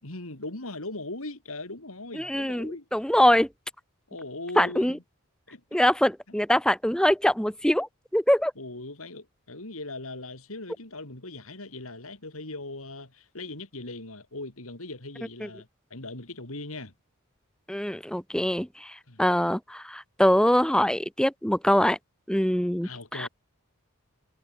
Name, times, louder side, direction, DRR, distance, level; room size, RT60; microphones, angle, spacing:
voice 1, 0.0-2.9 4.1-5.0 5.5-5.8 8.6-16.9 19.1-19.2 22.8-23.3, left 2 dB, 80° left, 3.8 m, -39 dB
voice 2, 2.1-3.5 4.6-5.0 5.7-8.5 15.4-15.5 17.7-22.0 22.3-23.3, equal, 5° left, 1.0 m, -23 dB
head